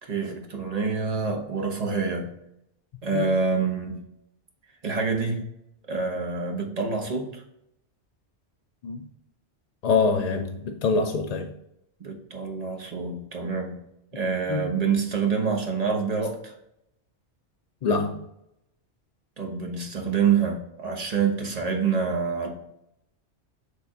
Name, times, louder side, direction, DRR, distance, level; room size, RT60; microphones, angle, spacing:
voice 1, 0.0-2.3 3.0-4.0 4.8-5.4 5.9-7.4 12.0-13.8 14.1-16.5 19.4-22.5, right 5 dB, 35° right, 1.1 m, -26 dB
voice 2, 9.8-11.5 14.5-14.7 17.8-18.2, left 4 dB, 60° left, 0.4 m, -25 dB
6.6 x 3.4 x 4.7 m
omnidirectional pair, 1.1 m